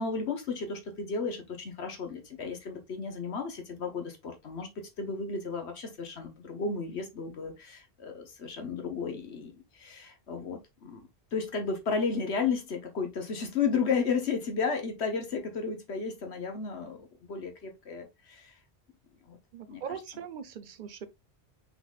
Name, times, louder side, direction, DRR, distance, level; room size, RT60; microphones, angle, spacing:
voice 1, 0.0-18.5 19.2-19.4 19.7-19.8, left 5 dB, 80° left, 1.4 m, -33 dB
voice 2, 19.5-21.1, right 7 dB, 55° right, 0.8 m, -40 dB
5.4 x 4.1 x 2.4 m
omnidirectional pair, 1.1 m